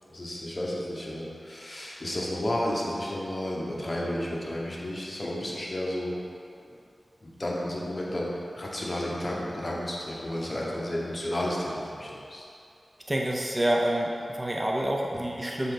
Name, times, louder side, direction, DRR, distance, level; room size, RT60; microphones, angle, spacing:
voice 1, 0.1-6.1 7.2-8.3 8.5-12.4, left 1 dB, 35° left, -4 dB, 1.1 m, -32 dB
voice 2, 13.1-15.7, right 1 dB, 25° right, -1 dB, 0.5 m, -27 dB
7.4 x 3.9 x 3.8 m, 2.5 s
wide cardioid pair, 70°, 0 cm